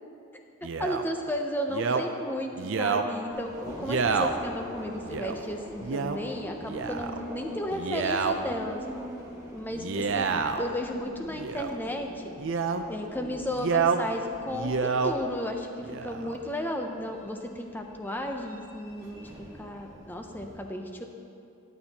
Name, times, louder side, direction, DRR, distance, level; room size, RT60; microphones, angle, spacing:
Male speech man speaking, 0.6-1.0 1.7-2.0 2.6-3.1 3.8-4.3 5.1-5.3 5.8-6.2 6.6-7.2 7.7-8.3 9.7-10.7 11.3-11.8 12.4-12.8 13.5-14.0 14.5-15.1 15.8-16.4, right 5 dB, 60° right, 0.5 m, -28 dB
voice 1, 0.8-8.8 9.5-12.2 12.9-21.1, left 1 dB, 10° left, 3 dB, 0.6 m, -34 dB
Subway metro underground, 3.3-20.5, equal, 15° right, 1.4 m, -44 dB
13.0 x 9.9 x 2.9 m, 2.6 s
head